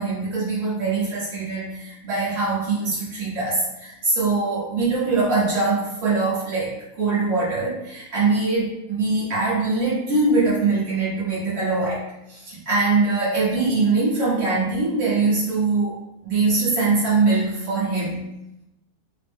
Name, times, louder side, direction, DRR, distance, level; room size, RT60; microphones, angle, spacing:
voice 1, 0.0-12.0 12.3-16.0 16.2-18.2, right 3 dB, 85° right, -10 dB, 1.9 m, -22 dB
4.6 x 2.0 x 3.5 m, 0.90 s
omnidirectional pair, 1.9 m